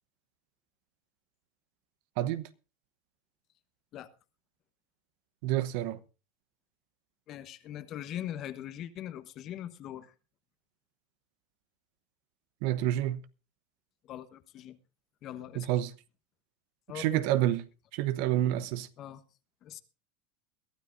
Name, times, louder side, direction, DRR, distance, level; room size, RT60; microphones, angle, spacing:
voice 1, 2.2-2.5 5.4-6.0 12.6-13.2 15.6-15.9 16.9-17.6 17.9-18.9, right 13 dB, 65° right, 0.9 m, -28 dB
voice 2, 7.3-10.1 14.0-14.8 15.2-15.7 16.9-17.2 19.0-19.2 19.6-19.8, left 11 dB, 45° left, 1.3 m, -41 dB
22.0 x 12.5 x 2.6 m
hypercardioid pair, 105°, 0 cm